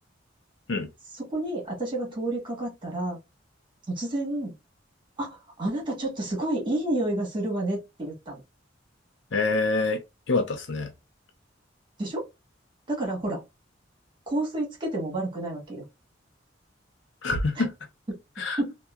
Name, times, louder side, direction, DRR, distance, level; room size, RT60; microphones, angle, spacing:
voice 1, 1.1-3.2 3.9-4.5 5.2-8.4 12.0-12.2 12.9-13.4 14.3-15.8 17.6-17.7 18.6-18.7, right 1 dB, 25° right, 1.4 m, -30 dB
voice 2, 9.3-10.0 10.3-10.9 17.2-17.7 18.4-18.6, left 3 dB, 75° left, 0.6 m, -25 dB
2.8 x 2.3 x 2.3 m
head